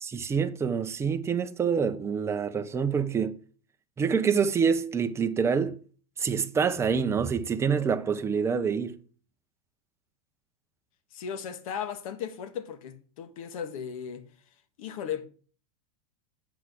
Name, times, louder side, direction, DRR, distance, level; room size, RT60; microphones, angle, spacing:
voice 1, 0.0-3.4 4.0-5.8 6.2-9.0, right 6 dB, 15° right, 0.7 m, -26 dB
voice 2, 11.1-14.2 14.8-15.3, left 8 dB, 70° left, 1.5 m, -36 dB
8.0 x 4.8 x 6.0 m
supercardioid pair, 140°, 19 cm